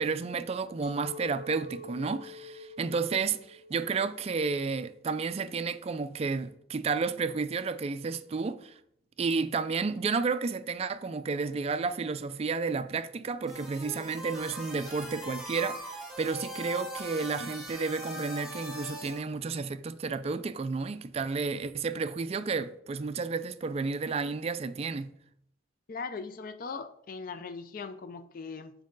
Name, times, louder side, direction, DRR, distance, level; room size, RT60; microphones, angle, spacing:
voice 1, 0.0-8.8 9.2-25.1, right 4 dB, 30° right, 0.3 m, -31 dB
Chink clink, 0.8-6.0, left 2 dB, 70° left, 1.7 m, -47 dB
sound 1, 13.5-19.2, equal, ahead, 1.5 m, -41 dB
voice 2, 25.9-28.7, left 4 dB, 45° left, 0.5 m, -39 dB
7.4 x 4.7 x 3.9 m
head